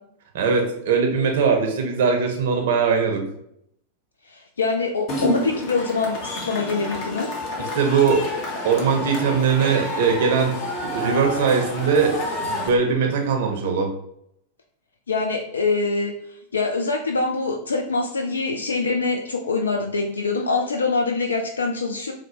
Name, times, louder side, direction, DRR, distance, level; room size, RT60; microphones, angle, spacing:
voice 1, 0.3-3.2 7.6-8.2 8.6-13.9, right 5 dB, 55° right, 3 dB, 0.5 m, -21 dB
voice 2, 4.3-7.3 15.1-16.1 16.5-22.1, left 3 dB, 70° left, 3 dB, 0.3 m, -24 dB
Cheering / Crowd, 5.1-12.7, left 1 dB, 40° left, 0.8 m, -29 dB
4.0 x 2.0 x 2.8 m, 0.75 s
figure-of-eight pair, 90°, 0 cm